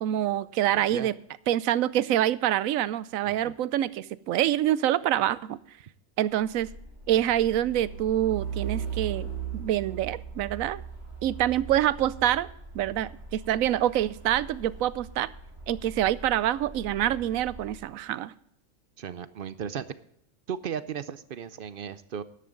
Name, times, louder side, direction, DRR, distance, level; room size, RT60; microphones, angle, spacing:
voice 1, 0.0-1.1 1.5-5.6 6.2-6.7 7.1-10.8 11.2-12.5 12.7-15.3 15.7-18.3, right 12 dB, 90° right, 19 dB, 1.0 m, -26 dB
voice 2, 0.7-1.1 3.2-3.5 19.0-19.9 20.5-22.2, right 8 dB, 55° right, 15 dB, 0.6 m, -36 dB
Truck, 6.5-17.9, right 6 dB, 15° right, 3.8 m, -39 dB
13.0 x 11.0 x 3.8 m, 0.72 s
omnidirectional pair, 1.4 m